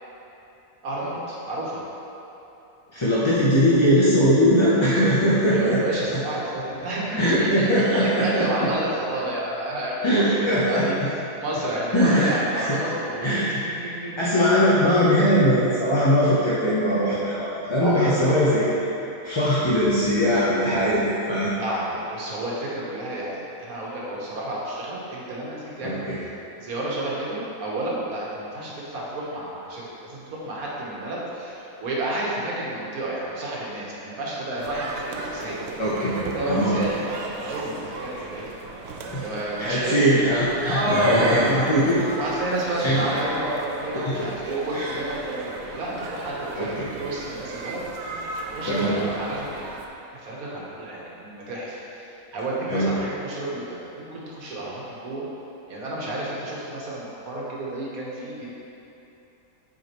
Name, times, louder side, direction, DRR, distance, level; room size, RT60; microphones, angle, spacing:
voice 1, 0.8-1.8 5.5-11.0 11.4-13.4 13.6-14.1 17.8-18.4 21.6-26.1 26.6-35.7 36.1-38.5 39.2-40.2 40.6-41.7 42.2-47.8 48.5-49.5 50.1-55.2 55.7-58.5, right 1 dB, 85° right, -5 dB, 1.6 m, -30 dB
voice 2, 2.9-5.8 7.2-8.3 10.0-10.9 11.9-12.8 13.2-13.5 14.2-18.6 19.2-21.5 25.8-26.2 35.8-36.2 36.5-36.8 39.1-39.2 39.6-42.0 42.8-43.1 44.0-44.1 44.7-44.9 46.6-46.9 48.6-49.0 52.7-52.9, equal, 30° left, -9 dB, 0.5 m, -20 dB
sound 1, 34.6-49.9, right 3 dB, 65° right, 0.8 m, -36 dB
8.1 x 4.9 x 3.0 m, 3.0 s
omnidirectional pair, 1.5 m